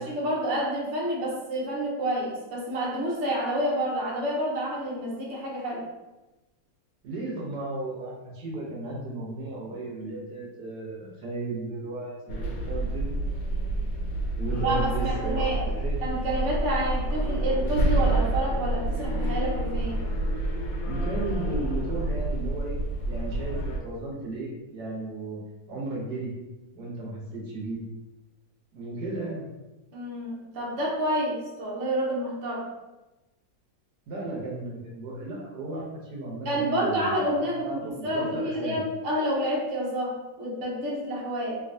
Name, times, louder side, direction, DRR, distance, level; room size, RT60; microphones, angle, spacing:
voice 1, 0.0-5.8 14.6-15.6 16.0-20.0 29.9-32.7 36.4-41.6, right 1 dB, 50° right, -4 dB, 1.0 m, -29 dB
voice 2, 7.0-13.1 14.2-16.0 20.9-22.7 23.0-25.4 25.7-26.3 26.7-27.8 28.7-29.4 34.1-38.8, right 2 dB, 75° right, -3 dB, 1.3 m, -35 dB
sound 1, 12.3-23.8, right 1 dB, 85° left, 1.3 m, -28 dB
3.2 x 2.9 x 2.6 m, 1.1 s
omnidirectional pair, 1.9 m